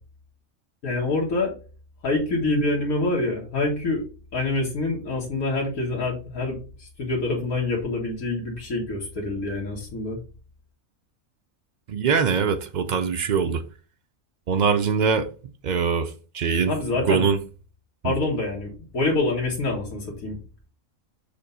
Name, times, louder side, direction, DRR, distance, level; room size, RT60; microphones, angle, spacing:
voice 1, 0.8-1.5 2.0-4.0 4.3-10.2 16.7-17.3 18.0-20.4, left 2 dB, 85° left, 1.9 m, -26 dB
voice 2, 11.9-13.6 14.5-15.3 15.6-16.7 17.1-17.4 18.0-18.1, right 6 dB, 80° right, 0.4 m, -22 dB
7.0 x 2.6 x 5.4 m
omnidirectional pair, 1.4 m